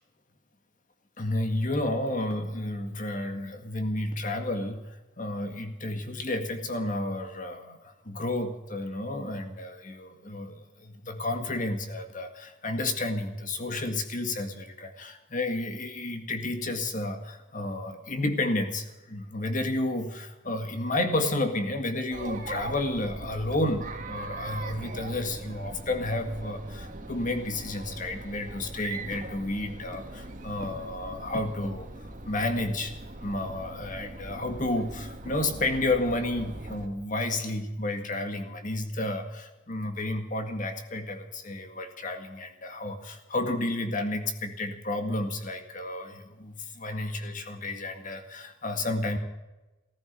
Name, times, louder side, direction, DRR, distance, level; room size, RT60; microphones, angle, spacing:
voice 1, 1.2-32.9 33.2-49.2, left 2 dB, 45° left, 6 dB, 1.9 m, -31 dB
Chatter, 22.1-36.9, right 2 dB, 40° right, 2.0 m, -41 dB
14.5 x 14.5 x 6.8 m, 1.1 s
head